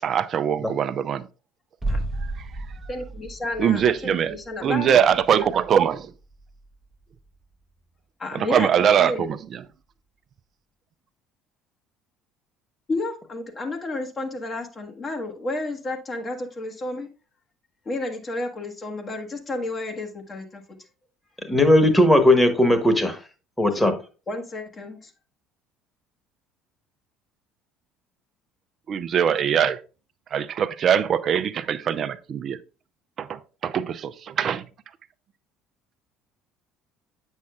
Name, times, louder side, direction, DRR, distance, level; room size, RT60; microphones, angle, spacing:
voice 1, 0.0-1.3 2.2-2.7 3.6-6.1 8.3-9.6 28.9-29.8 30.3-32.6 33.2-34.1 34.4-34.6, right 8 dB, 50° right, 13 dB, 0.4 m, -22 dB
sound 1, 1.8-7.5 7.8-7.9, right 2 dB, 15° right, 0.7 m, -34 dB
voice 2, 2.9-5.0 8.2-9.3 12.9-17.1 17.8-20.6 24.3-25.1, left 2 dB, 35° left, 3 dB, 1.2 m, -31 dB
voice 3, 21.5-23.2 23.6-23.9, left 1 dB, 10° left, 9 dB, 1.3 m, -17 dB
8.3 x 6.3 x 2.3 m, 0.33 s
hypercardioid pair, 60°, 0 cm